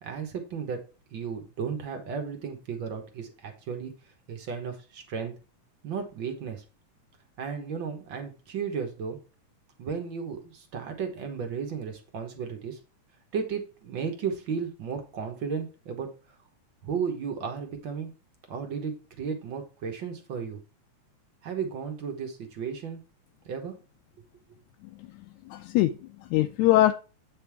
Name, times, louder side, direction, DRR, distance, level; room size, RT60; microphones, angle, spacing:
voice 1, 0.0-0.8 1.1-3.9 4.3-5.3 5.8-6.6 7.4-9.2 9.8-12.8 13.3-16.1 16.8-18.1 18.5-20.6 21.4-23.0 23.4-23.8, right 6 dB, 55° right, 5 dB, 1.4 m, -34 dB
voice 2, 25.5-26.9, left 14 dB, 80° left, 6 dB, 1.9 m, -23 dB
8.4 x 5.3 x 3.4 m, 0.33 s
omnidirectional pair, 3.4 m